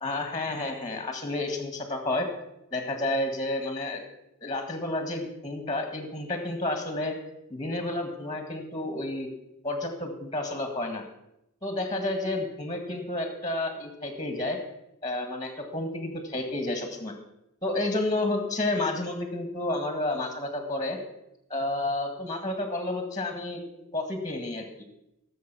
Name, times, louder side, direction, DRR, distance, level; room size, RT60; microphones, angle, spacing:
voice 1, 0.0-2.3 2.7-4.0 4.4-7.1 7.5-9.3 9.6-11.0 11.6-14.6 15.0-17.1 17.6-21.0 21.5-23.6 23.9-24.6, left 2 dB, 15° left, 5 dB, 1.8 m, -30 dB
16.0 x 7.5 x 6.1 m, 0.84 s
head